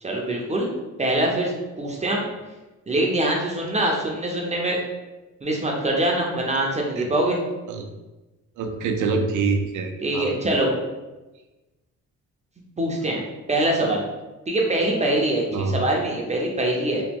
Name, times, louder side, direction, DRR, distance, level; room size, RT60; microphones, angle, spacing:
voice 1, 0.0-0.7 1.0-1.5 1.8-2.3 2.9-4.8 5.4-7.4 10.0-10.7 12.8-13.2 13.5-14.0 14.5-17.0, right 1 dB, 25° right, -1 dB, 0.6 m, -23 dB
voice 2, 8.6-10.3 15.5-15.8, right 4 dB, 75° right, 5 dB, 0.5 m, -25 dB
3.0 x 2.2 x 3.5 m, 1.1 s
cardioid pair, 90°, 30 cm